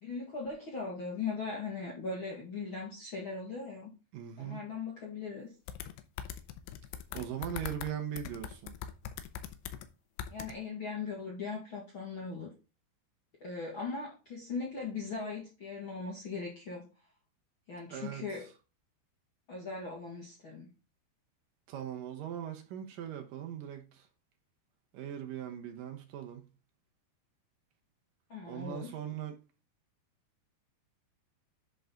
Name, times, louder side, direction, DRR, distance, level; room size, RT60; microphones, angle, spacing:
voice 1, 0.0-3.9 4.4-5.5 10.3-12.5 13.4-16.9 17.7-18.5 19.5-20.7 28.3-28.9, left 4 dB, 65° left, 1.2 m, -39 dB
voice 2, 4.1-4.6 7.1-8.8 17.9-18.3 21.7-24.1 24.9-26.5 28.5-29.4, right 10 dB, 70° right, 2.2 m, -40 dB
sound 1, 5.7-7.9 8.2-9.9 10.2-10.5, left 10 dB, 90° left, 2.9 m, -41 dB
10.5 x 4.2 x 3.8 m
omnidirectional pair, 4.9 m